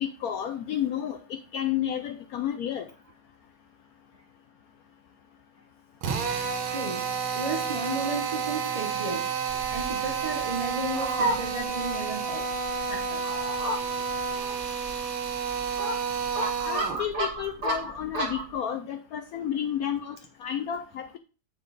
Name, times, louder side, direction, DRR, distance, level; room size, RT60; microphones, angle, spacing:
voice 1, 0.0-2.9 16.6-21.2, left 9 dB, 85° left, 0.8 m, -31 dB
Drill, 6.0-17.0, right 6 dB, 75° right, 1.9 m, -30 dB
voice 2, 6.7-9.3 9.7-12.5 12.8-13.3, right 2 dB, 55° right, 0.4 m, -34 dB
Fowl, 9.5-18.5, right 1 dB, 30° right, 1.3 m, -34 dB
7.1 x 5.9 x 4.0 m
omnidirectional pair, 2.2 m